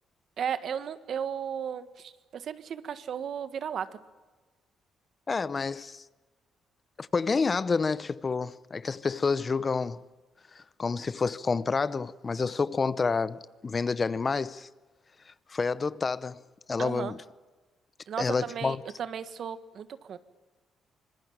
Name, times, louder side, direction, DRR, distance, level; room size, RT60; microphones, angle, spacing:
voice 1, 0.4-3.9 16.8-17.1 18.1-20.2, right 8 dB, 60° right, 1.6 m, -35 dB
voice 2, 5.3-6.0 7.0-10.0 10.5-14.7 15.3-16.4 16.7-17.2 18.2-18.8, left 4 dB, 35° left, 0.8 m, -29 dB
25.0 x 22.0 x 8.9 m
cardioid pair, 90°, 0 cm